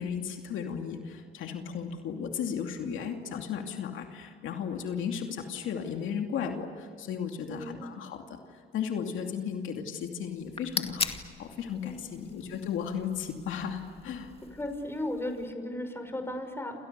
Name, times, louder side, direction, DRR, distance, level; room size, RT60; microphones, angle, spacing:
voice 1, 0.0-8.2 8.7-11.1 11.4-14.3, left 7 dB, 80° left, 3 dB, 2.6 m, -35 dB
voice 2, 7.4-7.9 11.8-12.1 14.5-16.8, left 1 dB, 10° left, 6 dB, 5.7 m, -36 dB
sound 1, 10.3-15.5, left 4 dB, 30° left, 2.1 m, -40 dB
29.0 x 28.5 x 6.9 m, 2.1 s
cardioid pair, 90°, 20 cm